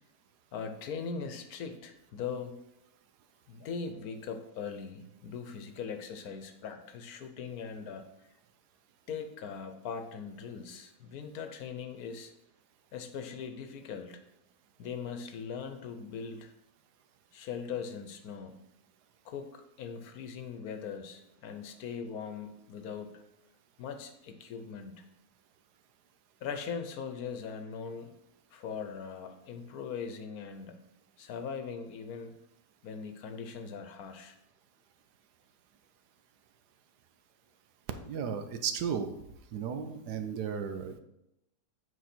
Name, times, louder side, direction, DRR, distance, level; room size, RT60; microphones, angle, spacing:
voice 1, 0.5-2.6 3.5-8.0 9.1-12.3 12.9-14.2 14.8-16.5 17.3-18.6 19.2-23.2 23.8-25.0 26.4-28.1 28.5-30.8 31.2-32.3 32.8-34.4, left 6 dB, 70° left, 8 dB, 1.2 m, -40 dB
voice 2, 38.0-39.1 39.5-41.0, right 7 dB, 85° right, 8 dB, 1.3 m, -34 dB
8.2 x 4.5 x 4.3 m, 0.87 s
omnidirectional pair, 1.7 m